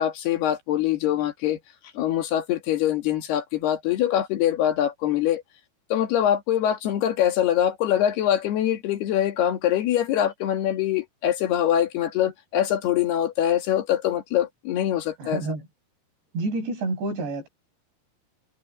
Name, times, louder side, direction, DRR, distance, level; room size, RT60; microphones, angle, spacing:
voice 1, 0.0-1.6 2.0-5.4 5.9-15.4, left 11 dB, 70° left, 3.9 m, -23 dB
voice 2, 15.2-15.7 16.3-17.5, right 3 dB, 90° right, 9.6 m, -29 dB
omnidirectional pair, 4.8 m